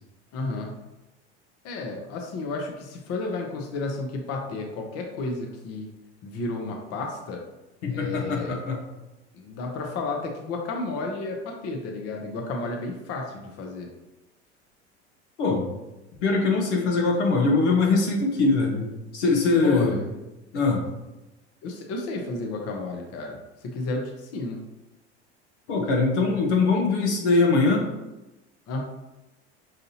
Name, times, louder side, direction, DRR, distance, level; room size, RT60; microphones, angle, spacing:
voice 1, 0.3-0.7 1.6-5.9 6.2-7.4 7.9-8.6 9.3-13.9 19.6-20.1 21.6-23.4 23.6-24.6 28.7-28.8, left 3 dB, 45° left, 1 dB, 0.9 m, -32 dB
voice 2, 7.8-8.8 15.4-15.7 16.2-18.9 19.1-20.0 20.5-20.8 25.7-27.9, left 3 dB, 80° left, 0 dB, 1.0 m, -22 dB
5.7 x 2.6 x 2.8 m, 1.0 s
hypercardioid pair, 85°, 34 cm